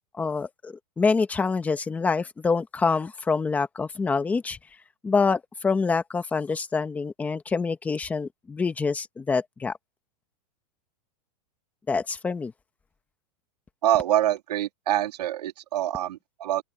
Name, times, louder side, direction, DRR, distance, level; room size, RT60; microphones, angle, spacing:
voice 1, 0.2-4.6 5.0-9.7 11.9-12.5, left 4 dB, 5° left, 1.2 m, -26 dB
voice 2, 13.8-16.6, right 12 dB, 85° right, 3.0 m, -25 dB
open air
supercardioid pair, 175°, 20 cm